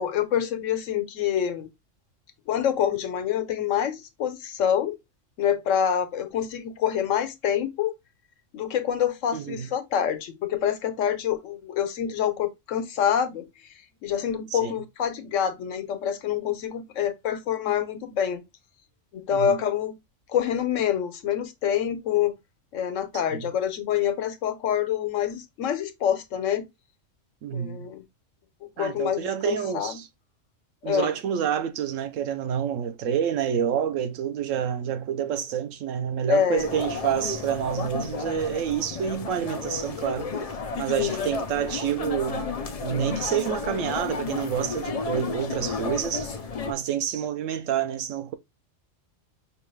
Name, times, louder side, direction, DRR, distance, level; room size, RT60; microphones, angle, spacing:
voice 1, 0.0-1.7 2.5-5.0 5.4-7.9 8.5-13.4 14.0-18.4 19.1-20.0 20.3-22.3 22.7-26.7 27.5-28.0 28.6-30.0 30.8-31.1 36.3-36.7 40.9-41.3, left 9 dB, 85° left, 1.1 m, -26 dB
voice 2, 9.3-9.7 14.5-14.7 19.3-19.6 23.3-23.5 27.4-27.9 28.8-30.1 30.8-40.3 40.7-42.5 42.8-46.3 46.7-48.3, right 9 dB, 90° right, 1.0 m, -28 dB
sound 1, 36.6-46.7, left 4 dB, 45° left, 0.5 m, -32 dB
5.3 x 2.3 x 3.1 m
omnidirectional pair, 1.3 m